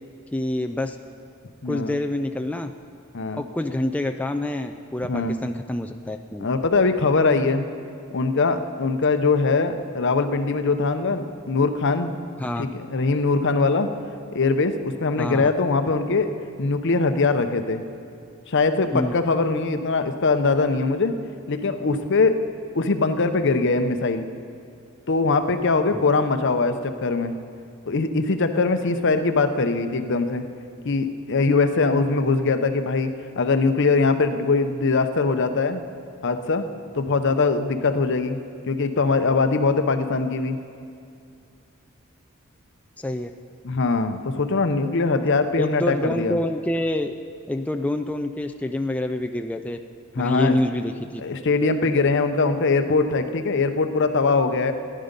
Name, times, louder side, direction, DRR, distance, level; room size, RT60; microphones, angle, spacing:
voice 1, 0.3-1.0 1.7-2.7 3.3-6.5 12.4-12.7 15.2-15.5 18.9-19.1 43.0-43.3 44.9-45.0 45.6-47.2 47.5-49.8 50.2-51.2, left 1 dB, 5° left, 4 dB, 0.3 m, -27 dB
voice 2, 1.6-2.0 3.1-3.4 5.1-5.4 6.4-7.6 8.1-12.1 12.6-13.9 14.3-16.3 16.6-17.8 18.5-21.1 21.5-22.4 22.7-24.3 25.1-27.4 27.9-30.4 30.8-33.1 33.4-35.8 36.2-36.7 36.9-40.6 43.6-46.4 50.1-50.6 51.2-54.7, left 3 dB, 60° left, 8 dB, 0.7 m, -22 dB
15.5 x 10.0 x 5.3 m, 2.5 s
head